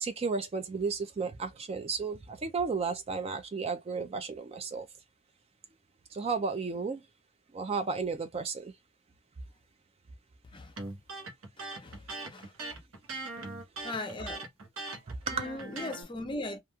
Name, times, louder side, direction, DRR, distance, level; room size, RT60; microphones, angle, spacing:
voice 1, 0.0-4.9 6.1-7.0 7.5-8.7 15.1-15.3, right 4 dB, 30° right, 0.3 m, -33 dB
Electric guitar, 10.8-16.0, right 2 dB, 75° right, 0.9 m, -40 dB
voice 2, 11.6-12.5 13.8-14.4 15.3-16.6, left 2 dB, 25° left, 0.5 m, -39 dB
2.9 x 2.4 x 2.3 m
head